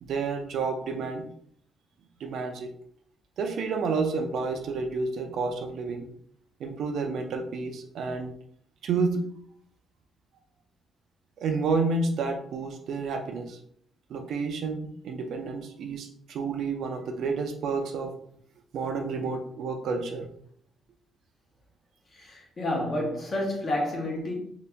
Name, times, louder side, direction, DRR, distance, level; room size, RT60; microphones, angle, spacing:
voice 1, 0.0-1.3 2.2-2.7 3.4-6.1 6.6-8.3 8.8-9.2 11.4-13.6 14.1-18.1 18.7-20.3, right 4 dB, 60° right, 0.5 m, -30 dB
voice 2, 22.1-24.3, left 1 dB, 30° left, 0.9 m, -30 dB
2.8 x 2.8 x 3.4 m
cardioid pair, 170°, 0 cm